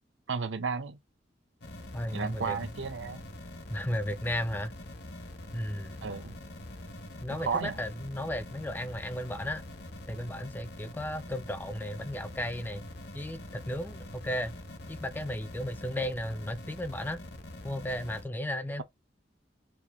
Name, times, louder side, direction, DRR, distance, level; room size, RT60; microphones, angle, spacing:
voice 1, 0.3-1.0 2.1-3.2 6.0-6.4 7.3-7.8, right 5 dB, 80° right, 0.7 m, -33 dB
sound 1, 1.6-18.2, left 1 dB, 60° left, 0.9 m, -44 dB
voice 2, 1.9-2.6 3.7-4.7 5.5-6.1 7.2-9.6 10.1-12.9 13.1-14.6 14.9-17.2 17.6-18.8, left 1 dB, 10° left, 0.3 m, -34 dB
4.5 x 2.6 x 3.4 m
head